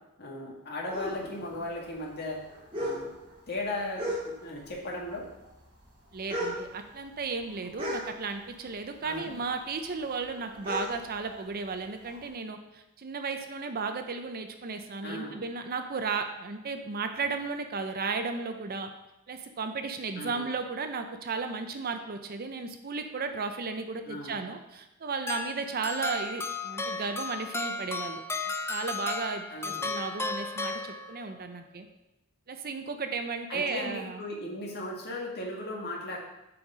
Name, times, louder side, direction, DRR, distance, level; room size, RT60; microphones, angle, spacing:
voice 1, 0.2-2.4 2.7-3.1 3.5-5.2 9.0-9.4 15.0-15.4 20.1-20.4 24.1-24.4 29.5-29.9 33.5-36.2, left 1 dB, 50° left, -2 dB, 1.9 m, -37 dB
sound 1, 0.9-4.7 5.0-8.7 9.0-12.2, equal, 25° right, 2.7 m, -37 dB
voice 2, 6.1-18.9 19.3-28.2 28.7-31.9 32.5-34.3, right 4 dB, 45° right, 7 dB, 0.6 m, -34 dB
sound 2, 25.3-31.4, left 3 dB, 10° left, 0.4 m, -34 dB
7.7 x 5.5 x 4.9 m, 0.91 s
head